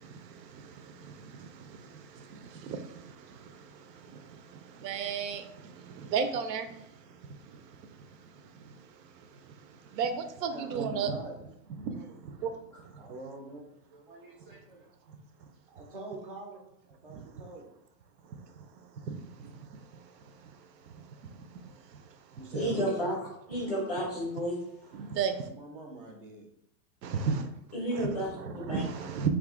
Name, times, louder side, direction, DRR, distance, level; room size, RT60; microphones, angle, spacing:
voice 1, 4.8-5.4 6.1-6.7 10.0-11.2 12.4-12.5 19.1-19.2 22.5-22.8 24.9-25.3 27.0-27.4 27.9-28.1 28.3-29.3, right 6 dB, 85° right, 9 dB, 0.6 m, -31 dB
voice 2, 10.5-11.4 11.9-12.0 13.0-15.2 15.7-16.6 17.0-17.7 22.4-23.0 25.5-26.5, right 2 dB, 35° right, 1 dB, 0.4 m, -45 dB
voice 3, 22.5-23.1 23.5-24.5 27.7-28.3 28.5-28.8, equal, 25° left, -3 dB, 0.5 m, -31 dB
2.7 x 2.4 x 3.5 m, 0.78 s
supercardioid pair, 170°, 49 cm